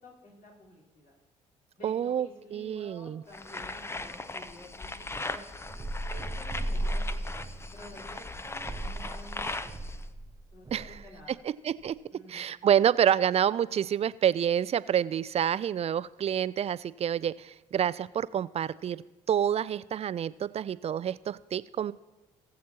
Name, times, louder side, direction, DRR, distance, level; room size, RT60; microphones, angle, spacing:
voice 1, 0.0-1.1 1.8-5.4 6.1-7.4 7.7-10.1 10.5-11.4 12.1-12.5, left 1 dB, 60° left, -6 dB, 4.1 m, -51 dB
voice 2, 1.8-3.2 10.7-10.8 11.6-11.9 12.3-19.0 19.3-21.9, right 9 dB, 40° right, 18 dB, 0.4 m, -28 dB
sound 1, 3.3-10.1, left 2 dB, 15° left, 0.6 m, -39 dB
sound 2, 5.6-11.2, right 1 dB, 20° right, 0.9 m, -36 dB
19.0 x 7.4 x 2.9 m, 1.1 s
hypercardioid pair, 55°, 16 cm